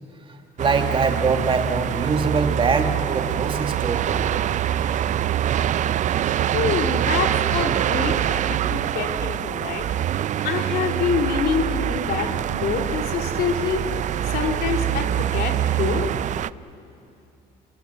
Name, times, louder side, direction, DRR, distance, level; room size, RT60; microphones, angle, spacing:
voice 1, 0.6-4.4, right 4 dB, 30° right, 5 dB, 2.1 m, -23 dB
sound 1, 0.6-16.5, right 11 dB, 45° right, 0.4 m, -24 dB
voice 2, 6.5-9.8 10.4-13.8 14.3-16.1, left 6 dB, 65° left, 4 dB, 2.5 m, -26 dB
29.0 x 19.0 x 7.0 m, 2.7 s
cardioid pair, 110°, 17 cm